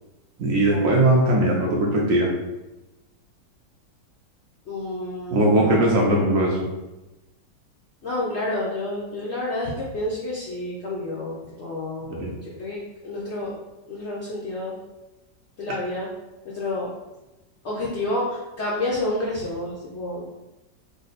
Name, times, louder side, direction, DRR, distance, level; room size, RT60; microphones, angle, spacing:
voice 1, 0.4-2.3 5.3-6.6 12.1-12.3, right 1 dB, 70° right, -2 dB, 0.8 m, -19 dB
voice 2, 4.7-5.9 8.0-13.5 13.9-14.8 15.6-16.1 16.5-16.9 17.6-20.3, left 2 dB, 85° left, -5 dB, 0.6 m, -29 dB
3.7 x 2.1 x 3.9 m, 1.0 s
omnidirectional pair, 2.0 m